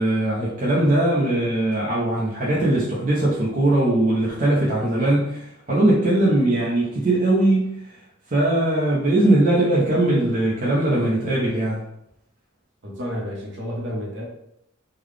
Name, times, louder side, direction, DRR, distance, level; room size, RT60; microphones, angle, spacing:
voice 1, 0.0-7.7 8.3-11.8, right 1 dB, 40° right, -6 dB, 0.7 m, -20 dB
voice 2, 12.8-14.2, equal, 60° right, -1 dB, 1.0 m, -30 dB
3.7 x 2.2 x 3.3 m, 0.75 s
head